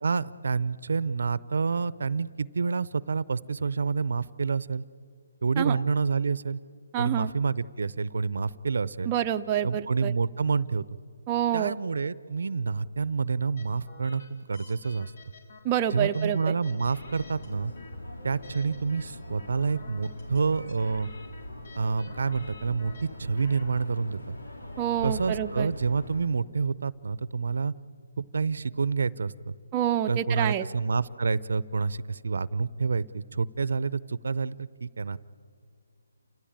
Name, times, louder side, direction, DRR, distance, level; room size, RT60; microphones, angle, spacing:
voice 1, 0.0-4.8 5.4-6.6 7.0-9.1 9.6-10.8 11.5-15.1 15.9-17.7 18.2-21.1 21.8-24.2 25.0-27.7 28.2-29.5 30.1-35.2, right 5 dB, 70° right, 19 dB, 0.6 m, -28 dB
voice 2, 6.9-7.3 9.1-10.1 11.3-11.7 15.6-16.5 24.8-25.7 29.7-30.7, right 10 dB, 20° right, 4 dB, 0.6 m, -27 dB
sound 1, 13.6-23.9, left 3 dB, 55° left, 2.7 m, -51 dB
sound 2, 16.8-26.2, left 1 dB, 85° left, 3.7 m, -42 dB
29.0 x 15.5 x 8.8 m, 2.3 s
hypercardioid pair, 160°, 0 cm